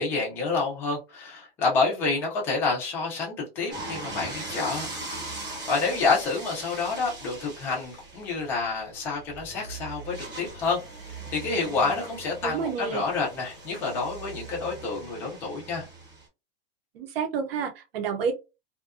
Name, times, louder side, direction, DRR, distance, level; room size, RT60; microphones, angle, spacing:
voice 1, 0.0-4.9 5.7-10.8 11.3-15.8, left 4 dB, 10° left, 0.3 m, -28 dB
sound 1, 3.7-16.3, right 2 dB, 15° right, 0.7 m, -40 dB
voice 2, 12.4-13.0 16.9-18.3, right 6 dB, 70° right, 0.7 m, -29 dB
2.7 x 2.2 x 2.3 m
supercardioid pair, 165°, 30 cm